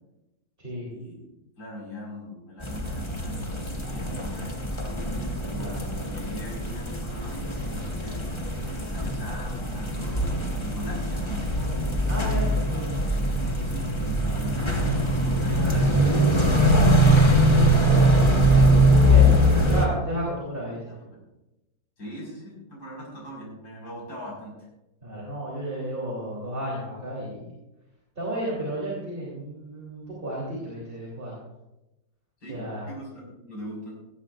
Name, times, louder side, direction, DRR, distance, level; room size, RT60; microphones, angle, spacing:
voice 1, 0.9-1.2 1.6-4.7 5.5-5.8 6.1-11.4 13.4-18.1 19.0-19.6 20.7-21.2 22.0-24.5 32.4-34.0, left 1 dB, 55° left, -5 dB, 5.7 m, -40 dB
sound 1, 2.6-19.9, equal, 15° left, 1.1 m, -22 dB
voice 2, 12.1-12.9 18.9-20.9 25.0-27.5 28.2-31.4 32.5-32.9, right 1 dB, 25° right, -5 dB, 3.5 m, -32 dB
17.5 x 15.0 x 2.5 m, 0.96 s
omnidirectional pair, 2.1 m